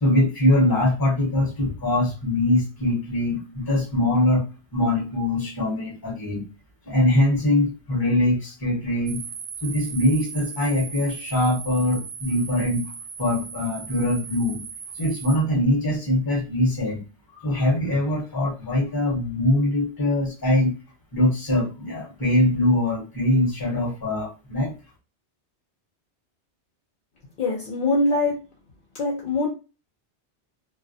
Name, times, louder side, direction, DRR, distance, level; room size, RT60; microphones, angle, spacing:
voice 1, 0.0-4.4 4.7-6.4 6.9-9.2 9.6-12.9 13.2-14.6 15.0-17.0 17.3-20.7 21.1-24.7, left 1 dB, 20° left, -2 dB, 0.8 m, -22 dB
sound 1, 9.1-15.4, right 6 dB, 70° right, 0.8 m, -38 dB
voice 2, 27.4-28.3 29.0-29.5, left 2 dB, 60° left, -3 dB, 0.7 m, -23 dB
2.3 x 2.1 x 2.6 m, 0.31 s
omnidirectional pair, 1.1 m